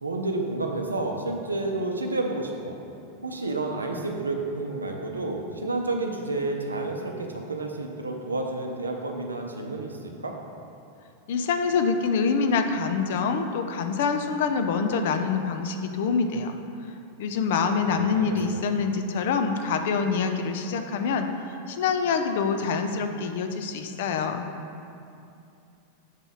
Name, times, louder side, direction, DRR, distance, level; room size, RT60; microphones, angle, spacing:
voice 1, 0.0-2.8 3.2-10.3 17.7-18.3 18.5-18.6, right 2 dB, 80° right, 2 dB, 0.6 m, -30 dB
voice 2, 11.3-16.5 17.2-21.3 21.7-24.5, left 5 dB, 55° left, 6 dB, 0.4 m, -25 dB
7.2 x 3.9 x 3.8 m, 2.6 s
figure-of-eight pair, 90°, 0 cm